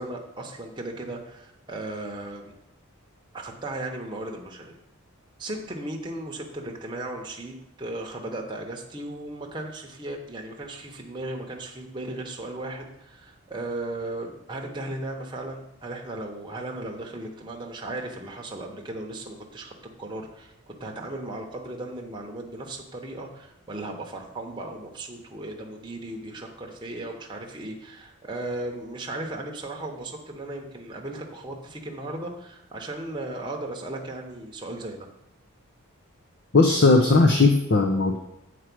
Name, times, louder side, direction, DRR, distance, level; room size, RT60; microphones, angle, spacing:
voice 1, 0.0-2.5 3.3-4.8 5.4-19.7 20.0-35.1, right 2 dB, 20° right, 0 dB, 1.0 m, -36 dB
voice 2, 36.5-38.2, left 3 dB, 50° left, 3 dB, 0.7 m, -18 dB
8.1 x 4.5 x 6.1 m, 0.90 s
head